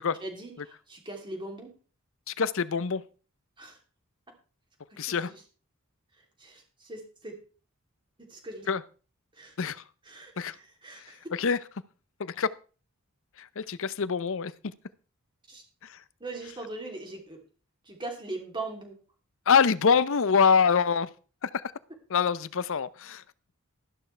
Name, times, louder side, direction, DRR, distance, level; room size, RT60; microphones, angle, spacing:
voice 1, 0.2-1.7 3.6-3.8 4.9-5.4 6.4-7.4 8.2-8.7 9.3-9.8 10.0-11.3 15.5-15.6 16.2-17.4 17.9-18.9, right 2 dB, 20° right, 2.9 m, -40 dB
voice 2, 2.4-3.0 5.0-5.3 8.7-8.8 9.6-9.8 10.4-10.5 11.3-11.6 12.2-12.5 13.6-14.5 19.5-21.1 21.4-21.6 22.1-23.2, left 6 dB, 60° left, 0.6 m, -24 dB
13.0 x 11.5 x 3.3 m
head